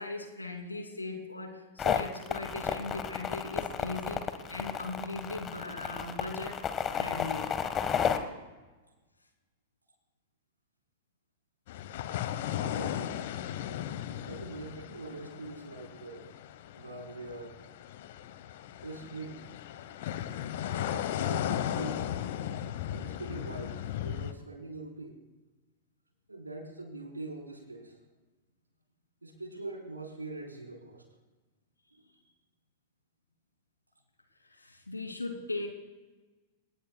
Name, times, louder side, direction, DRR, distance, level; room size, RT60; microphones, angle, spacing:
voice 1, 0.0-6.6 7.0-7.5 34.4-35.7, left 2 dB, 85° left, 3 dB, 2.9 m, -39 dB
sound 1, 1.8-8.2, left 8 dB, 25° left, 1.5 m, -32 dB
sound 2, 11.7-24.3, left 11 dB, 55° left, 1.1 m, -36 dB
voice 2, 12.5-13.2 14.3-16.3 16.7-17.6 18.8-19.4 20.5-22.1 22.9-25.2 26.3-28.0 29.2-31.0 31.9-32.1, right 2 dB, 85° right, 1 dB, 4.3 m, -43 dB
29.0 x 19.0 x 2.4 m, 1.2 s
figure-of-eight pair, 100°, 0 cm